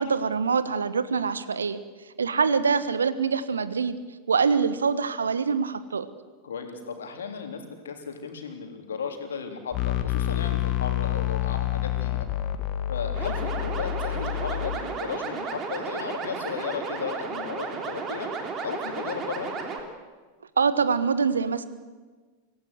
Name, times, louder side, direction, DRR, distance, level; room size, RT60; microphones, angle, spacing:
voice 1, 0.0-1.8 2.2-4.0 4.3-6.1 20.6-21.6, right 5 dB, 70° right, 14 dB, 1.2 m, -24 dB
voice 2, 6.4-12.3 12.9-18.3 18.6-19.5, left 6 dB, 65° left, 4 dB, 3.4 m, -35 dB
sound 1, 9.7-14.8, left 12 dB, 40° left, 1.9 m, -28 dB
sound 2, 13.1-19.8, right 4 dB, 30° right, 3.5 m, -33 dB
25.0 x 17.0 x 8.1 m, 1.4 s
figure-of-eight pair, 90°, 0 cm